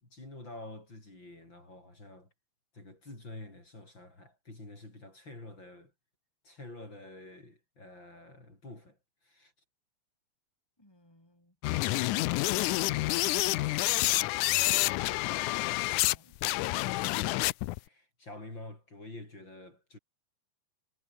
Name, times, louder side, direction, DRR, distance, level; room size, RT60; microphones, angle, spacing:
voice 1, 0.0-2.3 2.7-5.9 6.4-9.5 17.8-20.0, left 2 dB, 30° left, 7.9 m, -48 dB
voice 2, 10.8-11.6 12.9-13.7, left 1 dB, 5° left, 6.9 m, -58 dB
sound 1, 11.6-16.2 16.4-17.8, left 19 dB, 80° left, 1.9 m, -28 dB
omnidirectional pair, 4.0 m